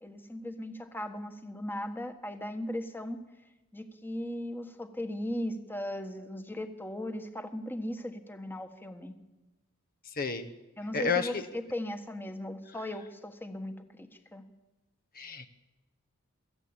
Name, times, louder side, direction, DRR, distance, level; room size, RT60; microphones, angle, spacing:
voice 1, 0.0-3.2 3.7-9.1 10.8-13.7 14.0-14.4, left 1 dB, 10° left, 7 dB, 1.3 m, -37 dB
voice 2, 10.1-10.5 10.9-11.4 15.1-15.5, left 5 dB, 45° left, 9 dB, 1.0 m, -30 dB
22.5 x 14.5 x 8.8 m, 1.1 s
head